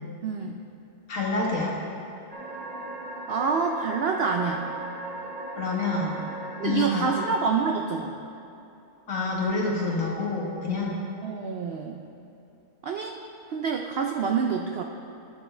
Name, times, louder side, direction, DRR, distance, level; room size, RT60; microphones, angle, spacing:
voice 1, 0.2-0.6 3.3-4.7 6.6-8.1 11.2-12.0 12.8-13.1 13.5-14.8, right 5 dB, 80° right, 3 dB, 0.5 m, -27 dB
voice 2, 1.1-1.7 5.5-6.2 6.6-7.1 9.1-11.0, left 3 dB, 60° left, -3 dB, 1.7 m, -27 dB
sound 1, 2.3-7.5, right 2 dB, 40° right, 0.8 m, -37 dB
12.0 x 6.8 x 3.3 m, 2.8 s
omnidirectional pair, 1.6 m